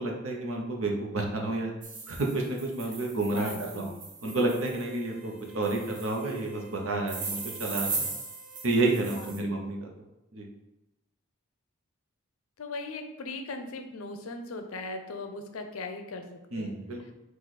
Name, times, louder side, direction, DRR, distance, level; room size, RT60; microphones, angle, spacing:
voice 1, 0.0-1.7 2.1-3.9 4.2-8.1 8.6-9.9 10.3-10.5 16.5-17.1, right 2 dB, 70° right, 1 dB, 0.9 m, -30 dB
sound 1, 1.8-5.0 5.6-6.4 7.1-9.4, right 4 dB, 35° right, 0.7 m, -38 dB
voice 2, 3.3-4.0 9.2-9.5 12.6-16.8, left 3 dB, 75° left, 5 dB, 0.6 m, -39 dB
sound 2, 4.2-9.3, right 5 dB, 15° left, 1.3 m, -54 dB
4.8 x 2.5 x 4.1 m, 0.94 s
head